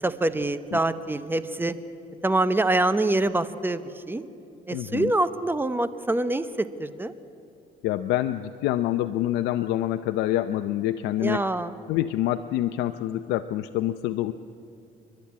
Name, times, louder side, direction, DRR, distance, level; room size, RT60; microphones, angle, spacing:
voice 1, 0.0-1.7 2.2-4.2 4.7-7.1 11.2-11.7, right 2 dB, 10° right, 13 dB, 0.9 m, -25 dB
voice 2, 4.7-5.1 7.8-11.5 11.9-14.3, left 13 dB, 85° left, 9 dB, 0.6 m, -26 dB
29.0 x 11.5 x 9.4 m, 2.6 s
cardioid pair, 110°, 17 cm